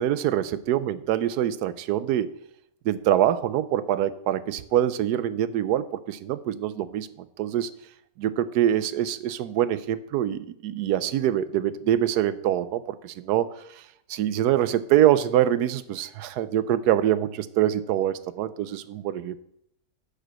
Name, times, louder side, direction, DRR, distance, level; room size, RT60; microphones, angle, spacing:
voice 1, 0.0-2.4 2.8-7.7 8.2-13.5 13.8-13.9 14.1-19.4, right 11 dB, 80° right, 14 dB, 1.2 m, -24 dB
10.5 x 5.1 x 6.3 m, 0.73 s
omnidirectional pair, 1.7 m